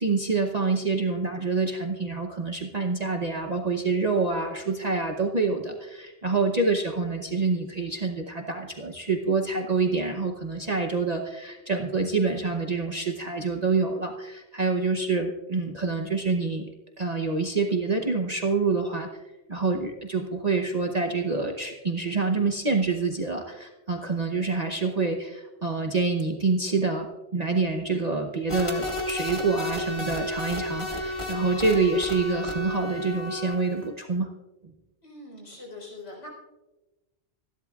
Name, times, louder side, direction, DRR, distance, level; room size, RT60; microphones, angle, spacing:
voice 1, 0.0-19.1 19.5-27.1 27.3-34.3, right 4 dB, 40° right, 3 dB, 0.9 m, -27 dB
sound 1, 28.5-33.9, left 1 dB, 25° left, 1.7 m, -32 dB
voice 2, 35.0-36.3, left 2 dB, 90° left, -1 dB, 4.6 m, -42 dB
26.5 x 11.5 x 2.4 m, 1.1 s
omnidirectional pair, 1.2 m